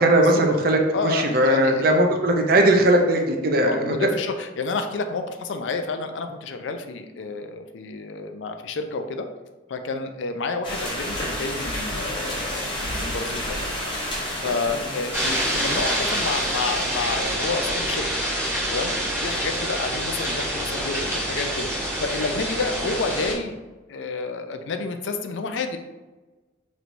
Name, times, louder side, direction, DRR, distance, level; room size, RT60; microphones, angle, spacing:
voice 1, 0.0-4.1 14.7-14.8, right 1 dB, 50° right, 3 dB, 0.5 m, -19 dB
voice 2, 0.9-1.9 3.7-9.3 9.7-13.6 14.4-18.1 18.7-18.9 19.2-21.7 22.0-23.6 23.9-25.8, left 3 dB, 75° left, 7 dB, 0.4 m, -29 dB
sound 1, 10.6-17.4, left 1 dB, 25° left, 0.8 m, -31 dB
sound 2, 15.1-23.3, equal, 15° right, 1.0 m, -26 dB
4.4 x 3.1 x 2.6 m, 1.2 s
head